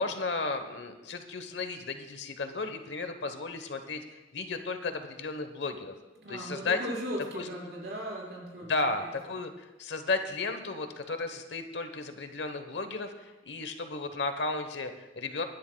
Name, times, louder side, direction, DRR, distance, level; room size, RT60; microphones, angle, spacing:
voice 1, 0.0-5.9 6.3-6.8 7.3-7.5 8.6-15.4, left 3 dB, 70° left, 8 dB, 1.0 m, -34 dB
voice 2, 6.2-8.7 9.0-9.1, equal, 55° right, -4 dB, 4.8 m, -37 dB
23.5 x 11.0 x 2.3 m, 1.1 s
head